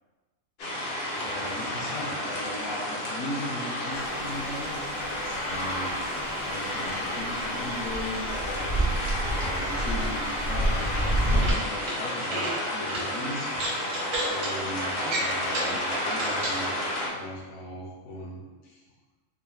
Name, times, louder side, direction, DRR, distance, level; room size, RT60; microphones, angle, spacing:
sound 1, 0.6-17.1, left 1 dB, 60° left, 0.7 m, -31 dB
voice 1, 1.2-6.0 6.4-8.7 9.4-13.5 14.3-18.8, left 1 dB, 75° left, -1 dB, 1.1 m, -38 dB
sound 2, 3.9-11.5, right 1 dB, 60° right, 0.6 m, -31 dB
sound 3, 11.3-11.9 12.2-12.5 12.9-13.0 13.5-14.5 15.0-15.8 16.1-16.6, right 2 dB, 90° right, 1.4 m, -32 dB
3.8 x 2.2 x 3.0 m, 1.2 s
omnidirectional pair, 1.4 m